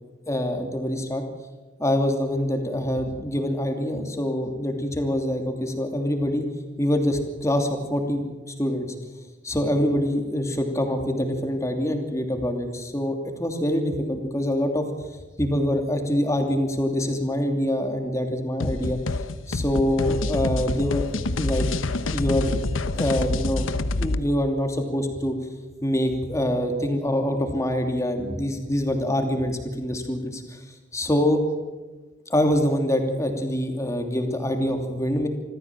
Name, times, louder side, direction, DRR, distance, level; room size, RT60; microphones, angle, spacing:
voice 1, 0.3-1.2 1.8-6.5 6.8-8.9 9.4-14.9 15.4-19.0 19.5-21.1 21.4-21.7 22.1-22.6 22.9-23.7 24.0-25.4 25.8-30.6 30.9-31.4 32.3-35.3, equal, 15° left, 4 dB, 2.8 m, -25 dB
sound 1, 18.6-24.2, left 2 dB, 85° left, 1.0 m, -27 dB
26.0 x 14.5 x 7.5 m, 1.3 s
head